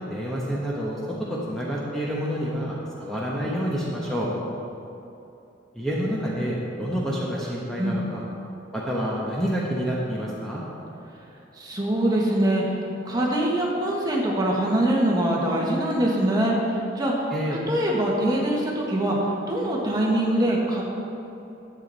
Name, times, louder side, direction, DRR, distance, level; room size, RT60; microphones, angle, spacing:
voice 1, 0.0-4.3 5.7-8.2 8.7-10.6 17.3-17.6, equal, 5° left, -6 dB, 1.1 m, -28 dB
voice 2, 11.6-12.8 13.0-17.3 17.7-20.8, right 1 dB, 20° right, -3 dB, 1.5 m, -23 dB
11.0 x 8.0 x 4.1 m, 2.9 s
head